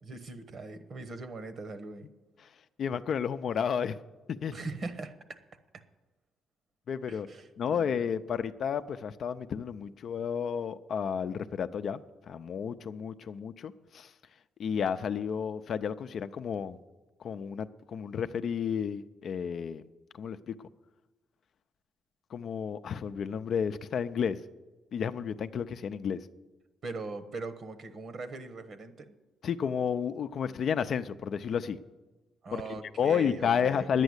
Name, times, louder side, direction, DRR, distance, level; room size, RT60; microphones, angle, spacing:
voice 1, 0.0-2.1 4.5-5.4 5.7-5.8 7.1-7.9 26.8-29.1 32.4-33.9, right 3 dB, 50° right, 10 dB, 1.2 m, -41 dB
voice 2, 2.8-4.0 4.3-4.5 6.9-7.3 7.6-12.0 12.3-14.1 14.6-16.8 17.2-19.8 20.2-20.5 22.3-24.4 24.9-26.2 29.4-31.8 32.5-32.6 33.0-34.0, left 7 dB, 60° left, 10 dB, 0.5 m, -31 dB
10.5 x 9.1 x 8.1 m, 1.2 s
cardioid pair, 90°, 0 cm